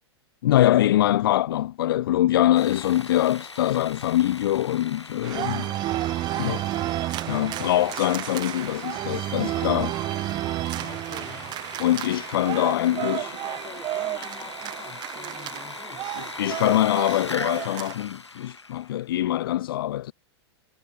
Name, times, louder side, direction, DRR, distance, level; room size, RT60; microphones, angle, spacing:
voice 1, 0.4-5.7 6.4-6.6 7.3-10.0 11.8-13.4 16.4-20.1, left 13 dB, 55° left, 0.5 m, -23 dB
Sawing, 2.6-19.0, left 3 dB, 85° left, 0.9 m, -40 dB
sound 1, 5.2-18.0, right 16 dB, 30° right, 1.2 m, -31 dB
Liquid, 8.6-8.8 9.0-9.2 9.5-9.8 10.2-10.5 11.2-11.3 11.7-12.7 13.0-13.5, right 24 dB, 45° right, 7.1 m, -54 dB
voice 2, 10.7-11.6 12.5-16.4, left 11 dB, 25° left, 2.7 m, -46 dB
figure-of-eight pair, 100°, 14 cm